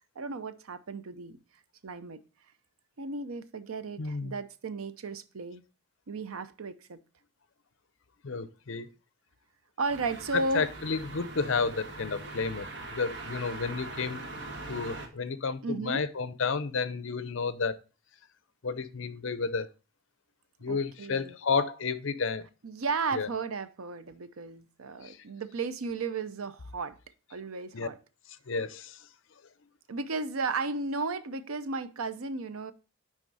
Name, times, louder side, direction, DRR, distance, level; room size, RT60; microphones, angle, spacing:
voice 1, 0.2-1.4 1.8-2.2 3.0-5.6 6.1-7.0 9.8-10.7 15.6-16.1 20.7-21.3 22.6-27.0 27.3-28.0 29.9-32.7, right 3 dB, 75° right, 0.6 m, -34 dB
voice 2, 4.0-4.3 8.2-8.9 10.3-14.2 14.7-17.8 18.6-19.7 20.6-22.5 23.1-23.3 25.0-25.2 27.7-27.9 28.5-29.0, left 4 dB, 60° left, 0.6 m, -31 dB
sound 1, 9.9-15.1, right 2 dB, 55° right, 1.3 m, -41 dB
9.9 x 3.6 x 4.0 m
head